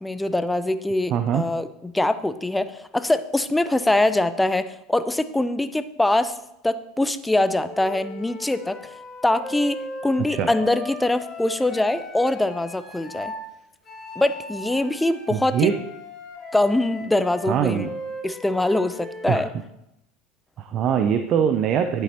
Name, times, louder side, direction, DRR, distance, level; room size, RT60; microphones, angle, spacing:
voice 1, 0.0-6.3 6.6-8.9 9.2-13.3 14.2-15.7 16.5-17.9 18.2-19.5, left 1 dB, 10° left, 12 dB, 0.5 m, -23 dB
voice 2, 1.1-1.4 10.3-10.5 15.3-15.7 17.5-17.9 19.3-19.4 20.6-22.0, right 8 dB, 50° right, 8 dB, 0.6 m, -22 dB
Wind instrument woodwind instrument, 7.6-13.4 13.8-19.5, left 2 dB, 30° left, 2.4 m, -38 dB
10.0 x 8.1 x 2.9 m, 0.86 s
hypercardioid pair, 80°, 0 cm